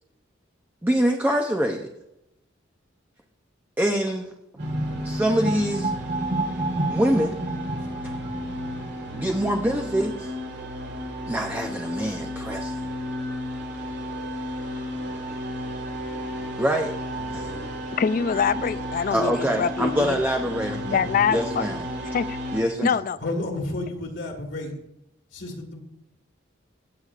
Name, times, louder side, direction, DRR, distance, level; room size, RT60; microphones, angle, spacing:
voice 1, 0.8-1.9 3.8-4.3 5.0-5.9 6.9-7.4 9.1-10.3 11.3-12.8 16.6-16.9 17.3-17.5 19.1-21.0 21.3-21.8 22.5-23.0, equal, 10° right, 3 dB, 0.6 m, -25 dB
sound 1, 4.6-9.9, right 2 dB, 40° right, 1.2 m, -30 dB
sound 2, 4.6-22.6, equal, 60° right, 2.0 m, -33 dB
voice 2, 18.0-20.2 20.9-21.7 22.0-22.4 22.8-23.2, left 6 dB, 45° left, 16 dB, 0.3 m, -24 dB
voice 3, 23.2-24.9 25.3-25.8, left 2 dB, 70° left, 0 dB, 1.7 m, -31 dB
16.5 x 8.1 x 2.5 m, 0.86 s
head